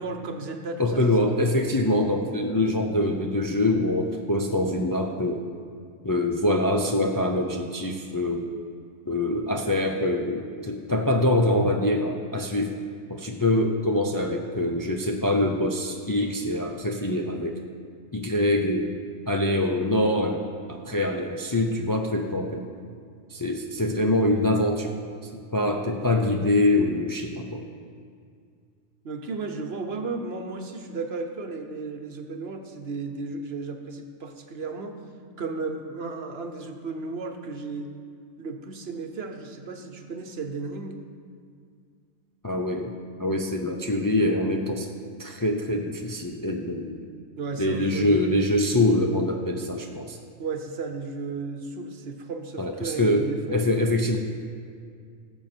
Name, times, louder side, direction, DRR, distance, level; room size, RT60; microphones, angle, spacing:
voice 1, 0.0-1.3 29.0-35.0 35.4-37.9 38.4-41.0 47.4-48.3 50.4-53.6, right 4 dB, 60° right, 5 dB, 1.1 m, -34 dB
voice 2, 0.8-5.4 6.0-8.5 9.1-12.7 13.1-17.6 18.1-18.9 19.3-22.7 23.3-24.9 25.2-27.6 42.4-42.9 43.2-44.9 45.2-47.0 47.6-50.2 52.6-53.2 53.5-54.2, left 1 dB, 25° left, 2 dB, 0.5 m, -24 dB
17.5 x 7.2 x 4.4 m, 2.2 s
omnidirectional pair, 1.3 m